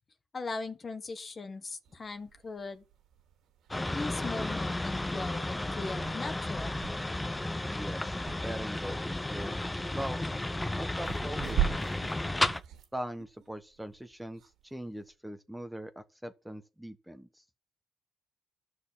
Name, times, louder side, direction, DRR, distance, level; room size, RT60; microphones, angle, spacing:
voice 1, 0.3-2.8 3.9-6.9, left 3 dB, 35° left, 1.6 m, -39 dB
sound 1, 1.8-15.1, right 11 dB, 85° right, 2.5 m, -41 dB
sound 2, 3.7-12.6, left 1 dB, 15° left, 0.9 m, -33 dB
voice 2, 7.7-10.3 10.7-11.8 12.9-17.4, right 1 dB, 5° right, 1.2 m, -41 dB
12.5 x 6.5 x 7.4 m
cardioid pair, 90°, 0 cm